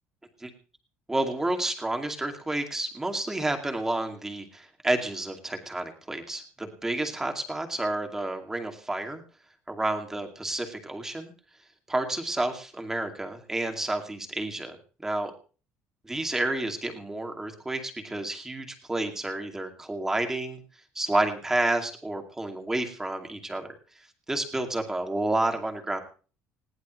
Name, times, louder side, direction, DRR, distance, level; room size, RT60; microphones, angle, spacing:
voice 1, 1.1-9.2 9.7-11.3 11.9-14.8 15.0-15.3 16.1-20.6 21.0-23.7 24.3-26.0, right 2 dB, 10° right, 4 dB, 2.3 m, -30 dB
20.5 x 17.5 x 3.1 m, 0.40 s
cardioid pair, 155°, 5 cm